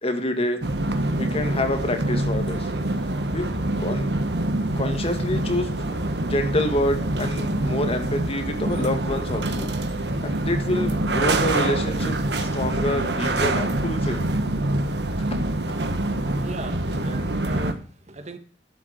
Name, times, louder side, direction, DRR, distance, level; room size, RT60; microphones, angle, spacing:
voice 1, 0.0-0.7 1.2-2.7 3.3-3.5 3.8-4.1 4.8-9.7 10.2-14.3, left 1 dB, 35° left, 6 dB, 2.1 m, -27 dB
sound 1, 0.6-17.7, right 1 dB, 70° right, 1.6 m, -25 dB
voice 2, 16.4-18.4, right 1 dB, 40° right, 9 dB, 1.6 m, -37 dB
12.0 x 7.1 x 8.4 m, 0.42 s
head